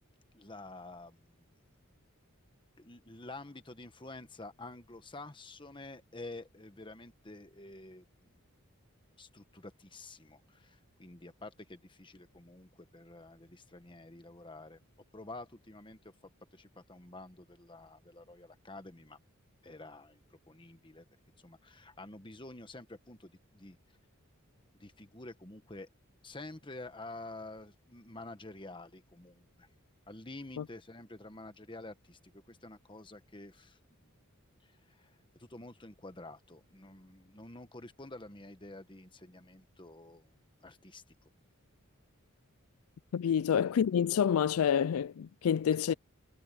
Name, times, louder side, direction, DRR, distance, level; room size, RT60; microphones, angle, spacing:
voice 1, 0.3-1.5 2.8-8.4 9.2-14.8 15.1-16.1 16.5-19.2 19.6-21.0 21.4-23.8 24.7-25.9 26.2-29.7 30.1-32.2 32.5-34.1 34.6-40.3 40.6-41.0 43.2-43.3 45.9-46.0, left 2 dB, 20° left, 1.3 m, -49 dB
voice 2, 43.1-45.9, left 8 dB, 75° left, 0.4 m, -28 dB
head